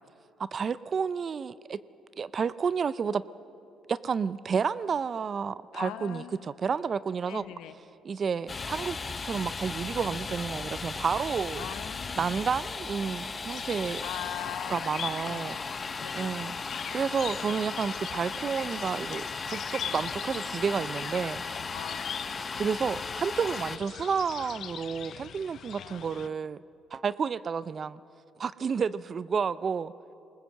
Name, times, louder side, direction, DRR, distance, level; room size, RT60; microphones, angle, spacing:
voice 1, 0.4-1.8 2.2-3.2 3.9-7.4 8.0-9.0 9.2-11.7 12.2-14.0 14.7-15.6 16.1-16.5 16.9-21.4 22.5-26.6 26.9-28.0 28.4-29.9, right 6 dB, 45° right, 17 dB, 0.4 m, -30 dB
voice 2, 5.7-6.5 7.3-7.8 11.5-12.4 14.0-14.9 15.2-15.5 16.0-16.3 21.7-22.3 25.7-26.3, left 11 dB, 85° left, 10 dB, 0.9 m, -41 dB
Domestic sounds home sounds, 8.5-23.8, left 4 dB, 35° left, 0.8 m, -36 dB
Crowd, 12.1-22.2, right 4 dB, 85° right, 2.2 m, -58 dB
sound 1, 13.5-26.3, left 9 dB, 60° left, 0.5 m, -42 dB
22.5 x 19.5 x 7.5 m, 2.8 s
cardioid pair, 80°, 0 cm